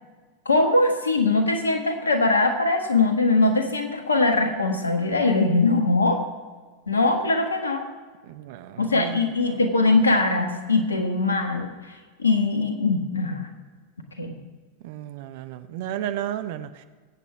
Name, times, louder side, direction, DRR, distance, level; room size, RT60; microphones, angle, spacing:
voice 1, 0.4-6.2 6.9-7.8 8.8-11.7 12.2-13.5 14.2-14.4, left 3 dB, 75° left, 5 dB, 1.6 m, -21 dB
voice 2, 8.2-9.3 14.8-16.8, right 11 dB, 50° right, 10 dB, 0.8 m, -33 dB
22.5 x 8.4 x 3.5 m, 1.4 s
figure-of-eight pair, 90°, 0 cm